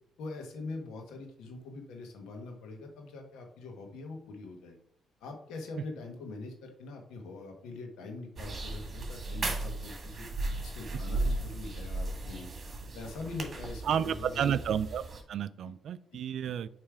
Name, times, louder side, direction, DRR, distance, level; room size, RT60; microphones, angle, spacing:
voice 1, 0.2-4.8 5.2-10.3 10.6-12.5 12.9-14.4 15.6-15.7, left 3 dB, 85° left, 3 dB, 1.4 m, -43 dB
sound 1, 8.4-15.2, right 2 dB, 40° right, 1.7 m, -36 dB
voice 2, 13.8-16.7, right 8 dB, 70° right, 15 dB, 0.3 m, -31 dB
6.8 x 3.2 x 4.9 m, 0.68 s
cardioid pair, 90°, 0 cm